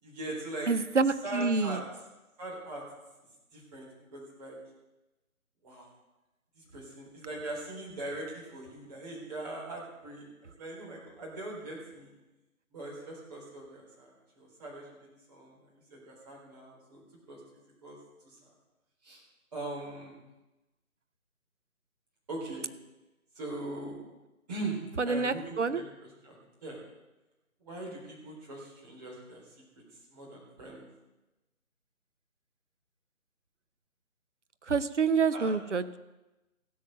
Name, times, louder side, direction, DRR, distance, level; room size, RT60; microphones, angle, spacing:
voice 1, 0.0-0.7 1.2-1.8 2.4-2.8 3.5-4.6 5.6-5.9 6.6-12.1 12.7-17.0 17.3-17.4 17.8-18.0 18.2-18.4 19.0-19.2 19.5-20.2 22.3-22.7 23.4-24.0 24.5-25.8 26.2-26.8 27.6-29.4 30.1-30.9 35.3-35.6, right 2 dB, 30° right, -4 dB, 3.9 m, -41 dB
voice 2, 0.7-1.8 25.0-25.8 34.7-36.0, right 4 dB, 55° right, 12 dB, 0.7 m, -27 dB
15.5 x 8.7 x 6.5 m, 1.0 s
figure-of-eight pair, 155°, 43 cm